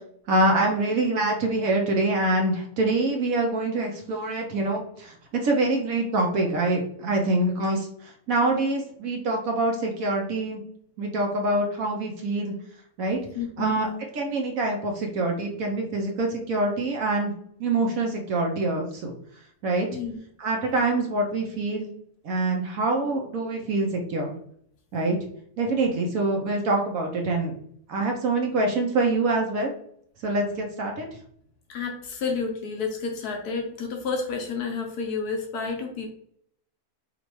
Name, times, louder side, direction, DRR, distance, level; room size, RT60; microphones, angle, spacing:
voice 1, 0.3-7.9 8.3-10.6 11.0-12.5 13.0-13.2 13.6-17.3 17.6-19.1 19.6-19.9 20.4-21.9 22.2-24.3 24.9-25.2 25.6-27.5 27.9-29.7 30.2-31.1, right 2 dB, 65° right, 1 dB, 1.2 m, -25 dB
voice 2, 13.3-13.7 19.9-20.2 31.7-36.1, left 5 dB, 75° left, 3 dB, 1.2 m, -30 dB
5.1 x 2.5 x 3.1 m, 0.66 s
omnidirectional pair, 1.7 m